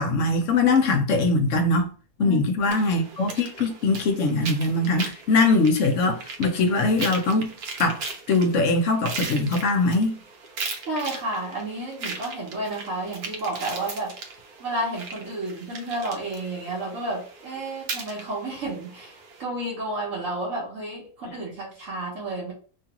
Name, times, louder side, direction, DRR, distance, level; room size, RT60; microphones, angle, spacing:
voice 1, 0.0-1.9 2.2-7.5 7.8-8.0 8.3-10.1, left 3 dB, 65° left, 0.9 m, -22 dB
voice 2, 2.2-2.8 10.9-14.1 14.6-22.5, right 1 dB, 60° right, 1.1 m, -31 dB
sound 1, 2.7-19.4, right 4 dB, 85° right, 1.2 m, -38 dB
2.8 x 2.4 x 2.9 m
omnidirectional pair, 1.6 m